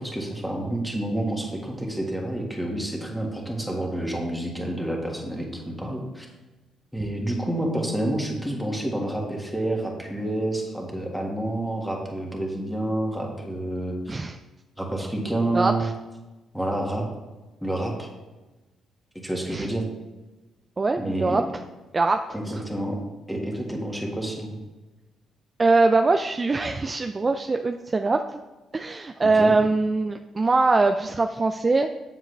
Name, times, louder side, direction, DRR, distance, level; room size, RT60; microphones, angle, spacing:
voice 1, 0.0-6.3 6.9-14.2 14.8-15.9 16.5-17.0 17.6-18.1 19.1-19.8 21.0-21.4 22.3-23.0 23.3-24.6 29.2-29.5, right 1 dB, ahead, 0 dB, 1.7 m, -29 dB
voice 2, 15.5-15.9 19.5-19.7 20.8-21.4 21.9-22.3 25.6-28.4 28.7-31.9, right 3 dB, 30° right, 6 dB, 0.3 m, -22 dB
7.5 x 7.3 x 3.3 m, 1.2 s
cardioid pair, 90°, 0 cm